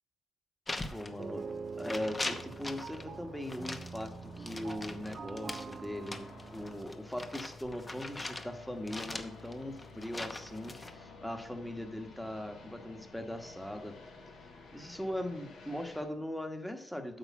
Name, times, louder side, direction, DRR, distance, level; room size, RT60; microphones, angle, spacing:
sound 1, 0.7-1.5 1.8-3.1 3.5-8.5 8.9-10.9, left 2 dB, 20° left, 0.9 m, -41 dB
voice 1, 0.9-1.4 1.8-13.9 14.7-17.2, left 1 dB, 5° left, 5 dB, 1.3 m, -40 dB
sound 2, 1.0-16.0, left 2 dB, 75° left, 3.0 m, -52 dB
sound 3, 1.2-6.8, right 5 dB, 45° right, 0.4 m, -45 dB
9.0 x 4.8 x 7.3 m, 0.77 s
cardioid pair, 90°, 0 cm